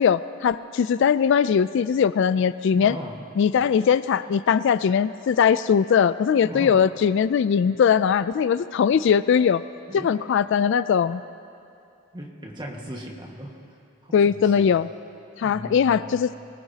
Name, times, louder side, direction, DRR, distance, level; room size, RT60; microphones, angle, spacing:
voice 1, 0.0-3.0 3.4-9.6 10.0-11.2 14.1-14.9 15.4-16.3, left 7 dB, 60° left, 15 dB, 0.3 m, -20 dB
voice 2, 2.7-3.3 6.4-6.8 9.9-10.1 12.1-13.6 14.0-14.8 15.4-16.1, equal, 20° right, 0 dB, 1.6 m, -38 dB
24.0 x 18.5 x 2.8 m, 2.6 s
head